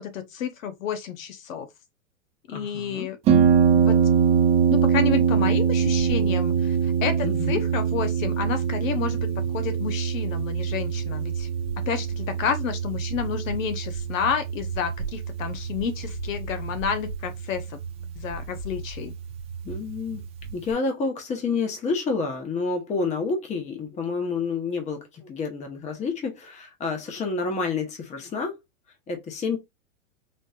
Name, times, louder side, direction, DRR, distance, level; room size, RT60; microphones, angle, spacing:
voice 1, 0.0-1.7 2.5-3.2 3.7-4.0 4.7-9.3 9.5-11.5 11.9-17.8 18.2-19.1, left 7 dB, 70° left, 0.9 m, -30 dB
voice 2, 2.5-3.1 7.2-7.6 19.6-20.2 20.5-28.6 29.1-29.6, left 4 dB, 15° left, 1.0 m, -29 dB
Harp, 3.3-20.7, right 7 dB, 15° right, 0.4 m, -24 dB
4.2 x 3.0 x 2.4 m
hypercardioid pair, 130°, 41 cm